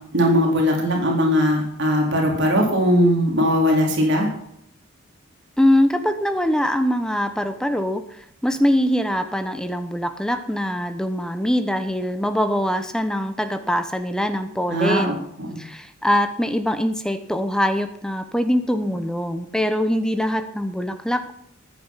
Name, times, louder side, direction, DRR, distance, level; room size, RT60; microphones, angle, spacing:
voice 1, 0.1-4.3 14.7-15.6, equal, 55° right, 0 dB, 4.3 m, -19 dB
voice 2, 5.6-8.0 8.4-15.2 15.6-21.3, equal, 5° left, 9 dB, 1.0 m, -23 dB
14.5 x 10.5 x 5.7 m, 0.71 s
head